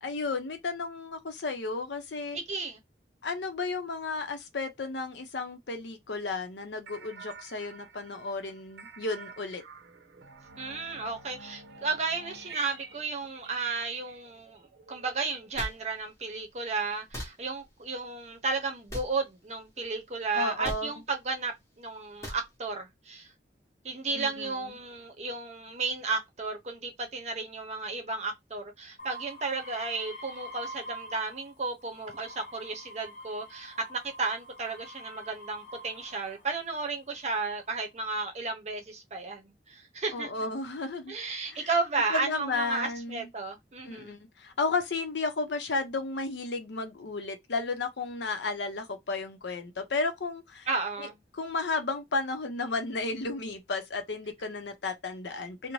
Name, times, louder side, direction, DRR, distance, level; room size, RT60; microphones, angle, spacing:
voice 1, 0.0-2.4 3.2-9.6 20.3-20.9 24.1-24.7 40.1-41.1 41.5-41.7 42.1-43.3 43.9-50.7 51.0-51.1 51.3-55.7, left 3 dB, 85° left, 0.7 m, -33 dB
voice 2, 2.3-2.8 10.6-23.3 23.8-40.3 41.1-44.2 50.7-51.2, right 3 dB, 40° right, 0.7 m, -33 dB
sound 1, 6.9-15.8, right 4 dB, 85° right, 0.5 m, -49 dB
sound 2, 15.6-15.7 17.1-17.3 18.9-19.1 20.6-20.8 22.2-22.4, equal, 15° left, 0.8 m, -36 dB
sound 3, 29.0-31.5 31.9-36.4 37.2-37.7, equal, 45° left, 1.1 m, -46 dB
2.6 x 2.1 x 3.0 m
head